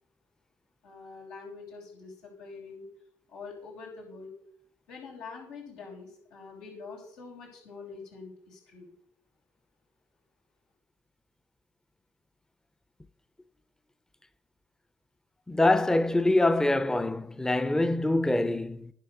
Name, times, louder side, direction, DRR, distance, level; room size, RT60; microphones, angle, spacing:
voice 1, 0.8-2.9 3.3-4.3 4.9-8.9, left 4 dB, 85° left, 5.3 m, -45 dB
voice 2, 15.5-18.9, left 2 dB, 10° left, 0.6 m, -24 dB
10.5 x 6.9 x 6.6 m
supercardioid pair, 70°, 7 cm